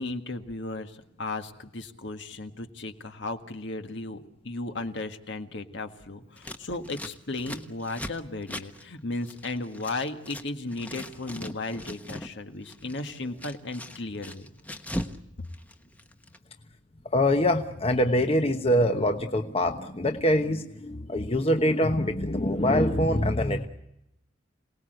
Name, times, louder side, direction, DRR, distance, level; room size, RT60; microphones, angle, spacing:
voice 1, 0.0-14.5, left 2 dB, 60° left, 6 dB, 1.7 m, -35 dB
Scissors, 6.4-10.5 10.7-12.3 12.6-15.2 15.4-16.4, equal, 10° left, 1.1 m, -39 dB
voice 2, 17.1-23.7, left 1 dB, 30° left, 6 dB, 1.1 m, -24 dB
27.5 x 19.0 x 7.9 m, 0.84 s
head